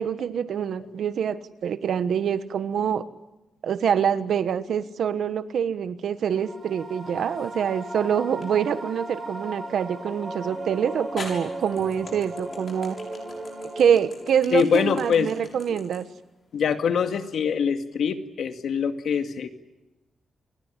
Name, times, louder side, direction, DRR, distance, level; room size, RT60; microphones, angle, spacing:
voice 1, 0.0-3.0 3.6-13.0 13.8-16.1, right 8 dB, 70° right, 12 dB, 1.3 m, -25 dB
sound 1, 6.3-14.4, right 1 dB, 25° right, 7.0 m, -37 dB
sound 2, 7.1-7.7 8.4-8.5 10.4-10.5 11.2-17.4, left 3 dB, 40° left, 7.0 m, -42 dB
voice 2, 14.5-15.3 16.5-19.5, left 7 dB, 75° left, 7 dB, 2.1 m, -24 dB
28.5 x 21.0 x 9.9 m, 1.0 s
wide cardioid pair, 165°, 0 cm